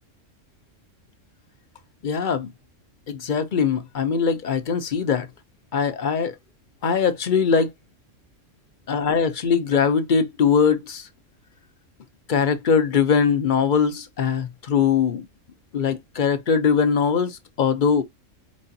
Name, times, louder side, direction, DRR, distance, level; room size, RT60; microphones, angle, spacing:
voice 1, 2.0-2.5 3.1-5.3 5.7-6.3 6.8-7.7 8.9-11.0 12.3-15.2 15.7-18.0, left 6 dB, 50° left, 0.7 m, -21 dB
4.7 x 4.2 x 2.6 m
omnidirectional pair, 1.3 m